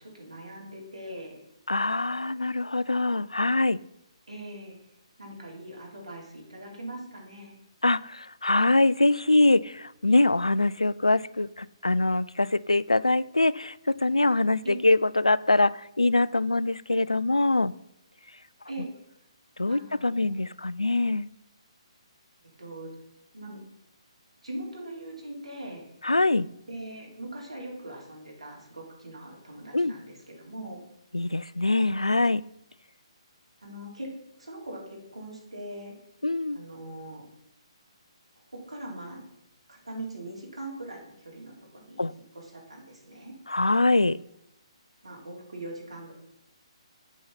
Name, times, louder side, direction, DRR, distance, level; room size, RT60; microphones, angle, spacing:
voice 1, 0.0-1.4 4.3-4.8 5.2-7.6 14.6-14.7 18.7-18.9 19.7-20.3 22.6-22.9 23.3-23.6 24.4-25.9 26.7-30.8 33.6-34.1 34.4-35.9 36.5-37.2 38.5-39.2 39.7-42.1 42.3-43.3 45.0-46.1, right 1 dB, 80° right, -1 dB, 3.9 m, -41 dB
voice 2, 1.7-3.8 7.8-17.7 19.6-21.3 26.0-26.5 29.7-29.9 31.1-32.4 36.2-36.6 42.0-42.1 43.5-44.2, left 2 dB, 90° left, 19 dB, 0.3 m, -24 dB
8.3 x 6.4 x 5.7 m, 0.80 s
figure-of-eight pair, 135°, 3 cm